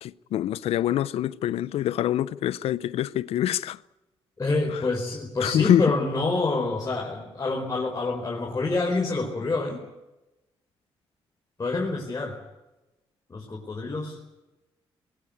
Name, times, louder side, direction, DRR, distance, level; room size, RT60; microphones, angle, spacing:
voice 1, 0.0-3.8 4.7-4.8 5.4-5.9, left 12 dB, 85° left, 0.7 m, -25 dB
voice 2, 4.4-9.8 11.6-12.4 13.3-14.2, left 3 dB, 35° left, 4.6 m, -27 dB
21.0 x 18.5 x 9.5 m
cardioid pair, 80°, 10 cm